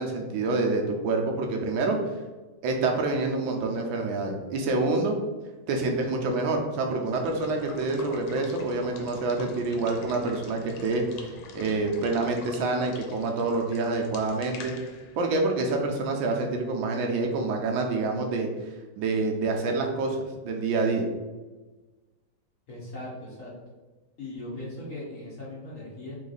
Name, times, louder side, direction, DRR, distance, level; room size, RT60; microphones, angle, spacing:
voice 1, 0.0-2.0 2.6-5.1 5.7-14.7 15.2-18.5 19.0-21.1, right 3 dB, 75° right, 2 dB, 1.4 m, -27 dB
Water / Water tap faucet / Liquid, 6.9-16.5, left 3 dB, 85° left, 1.5 m, -46 dB
voice 2, 22.7-23.5 24.2-26.2, left 1 dB, 45° left, -7 dB, 1.5 m, -39 dB
3.7 x 3.5 x 3.9 m, 1.2 s
omnidirectional pair, 2.2 m